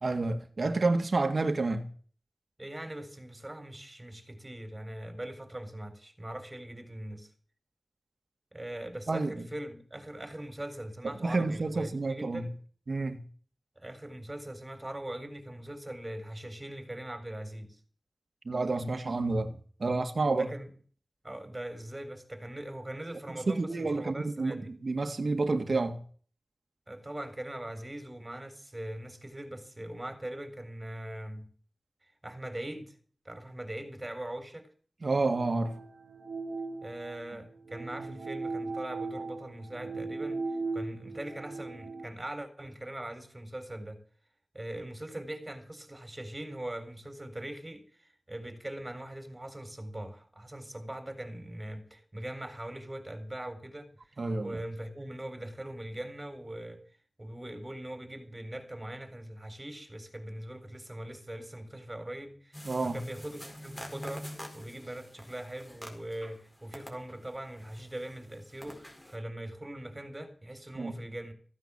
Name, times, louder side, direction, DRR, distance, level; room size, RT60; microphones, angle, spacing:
voice 1, 0.0-1.9 9.1-9.5 11.0-12.5 12.9-13.2 18.4-20.5 23.5-26.0 35.0-35.8 54.2-54.5 62.7-63.0 70.8-71.0, right 3 dB, 60° right, 2.0 m, -29 dB
voice 2, 2.6-7.3 8.5-12.5 13.8-17.8 20.3-20.7 21.2-24.7 26.9-31.5 32.2-33.0 33.2-34.7 36.8-44.0 44.5-71.3, right 1 dB, 20° right, 4.1 m, -41 dB
sound 1, 35.3-42.1, right 3 dB, 90° right, 1.4 m, -38 dB
sound 2, 62.5-66.4 66.7-69.2, equal, 15° left, 4.9 m, -46 dB
15.5 x 9.5 x 7.1 m
wide cardioid pair, 70°, 0 cm